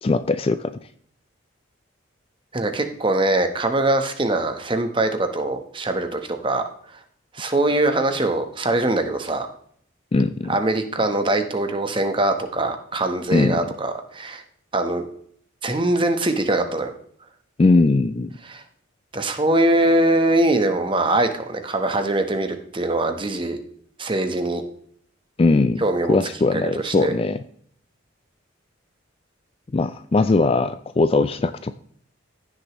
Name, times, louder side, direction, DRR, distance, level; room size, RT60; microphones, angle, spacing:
voice 1, 0.0-0.7 10.1-10.5 13.3-13.6 17.6-18.3 25.4-25.8 26.1-27.4 29.7-31.7, left 3 dB, 25° left, 12 dB, 0.3 m, -20 dB
voice 2, 2.5-6.6 7.3-9.5 10.5-14.4 14.7-15.0 15.6-16.9 18.4-18.6 19.1-23.6 24.0-24.6 25.8-26.2 26.7-27.1, right 2 dB, 25° right, 7 dB, 1.0 m, -22 dB
15.0 x 6.6 x 3.0 m, 0.62 s
head